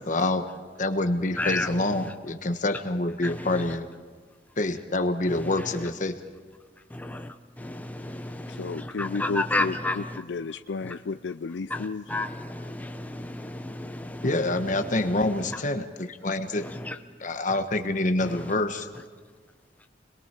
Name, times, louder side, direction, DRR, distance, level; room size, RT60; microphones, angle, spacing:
voice 1, 0.1-0.5 0.8-3.9 4.6-6.2 14.2-16.7 17.2-18.9, left 2 dB, 45° left, 7 dB, 1.3 m, -26 dB
voice 2, 1.4-2.1 3.2-3.8 5.3-5.9 6.9-10.2 10.8-10.9 11.7-15.6 16.6-17.0 18.2-18.5, left 2 dB, 10° left, 6 dB, 0.9 m, -33 dB
voice 3, 8.5-12.0, left 4 dB, 85° left, 11 dB, 0.5 m, -33 dB
29.5 x 22.0 x 4.5 m, 1.5 s
head